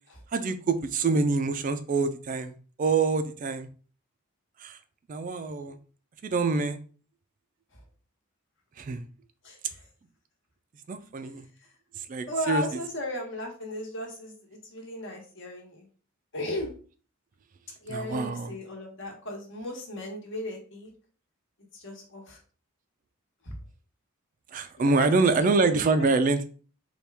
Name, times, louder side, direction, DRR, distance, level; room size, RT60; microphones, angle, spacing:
voice 1, 0.3-3.7 4.6-4.8 5.1-5.8 6.2-6.8 8.8-9.0 10.9-11.4 11.9-12.6 17.9-18.5 24.5-26.5, right 3 dB, 40° right, 10 dB, 0.3 m, -26 dB
voice 2, 9.4-9.9 12.3-15.9 16.3-16.8 17.8-20.9 21.7-22.4 23.4-23.5 24.8-25.1 25.4-26.1, left 1 dB, 60° left, 1 dB, 1.1 m, -36 dB
4.3 x 2.3 x 3.3 m, 0.39 s
head